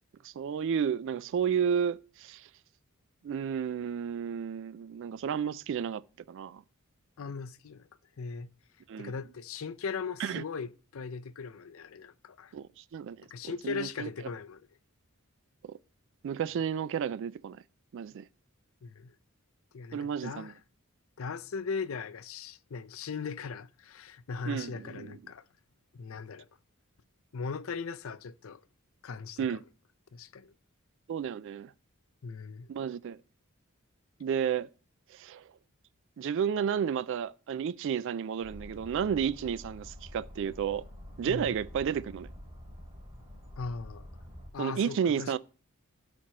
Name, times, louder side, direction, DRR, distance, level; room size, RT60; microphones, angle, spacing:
voice 1, 0.2-2.5 3.2-6.0 6.3-6.6 8.9-9.1 10.2-10.4 12.5-13.3 13.6-14.1 15.6-15.8 16.2-17.6 17.9-18.3 19.9-20.5 24.5-25.2 29.4-29.6 31.1-31.7 32.7-33.2 34.2-34.7 35.1-35.4 36.2-40.8 41.2-42.3 44.6-45.4, right 7 dB, 60° right, 0.3 m, -32 dB
voice 2, 7.2-7.9 8.2-8.5 9.0-12.5 13.3-14.7 18.8-19.1 19.7-20.6 21.2-25.4 25.9-26.5 27.3-28.6 29.0-29.6 30.1-30.5 32.2-32.7 41.2-41.6 43.6-44.1 44.5-45.4, left 5 dB, 70° left, 0.5 m, -39 dB
sound 1, 38.4-44.5, left 1 dB, 20° right, 2.8 m, -47 dB
13.0 x 4.4 x 2.8 m
head